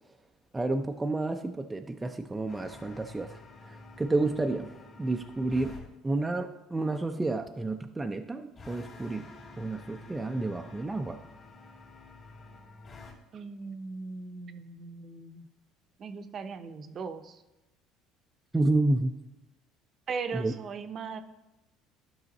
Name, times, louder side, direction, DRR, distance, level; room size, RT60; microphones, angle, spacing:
voice 1, 0.5-3.4 3.7-5.7 6.0-9.3 9.6-11.2 18.5-19.1 20.3-20.5, right 2 dB, 15° right, 4 dB, 0.5 m, -30 dB
sound 1, 2.5-5.9 8.5-13.1, left 3 dB, 40° left, 2.3 m, -49 dB
voice 2, 13.3-15.5 16.0-17.4 20.1-21.2, right 5 dB, 40° right, 9 dB, 0.8 m, -38 dB
12.0 x 5.6 x 4.1 m, 0.98 s
supercardioid pair, 110°, 0 cm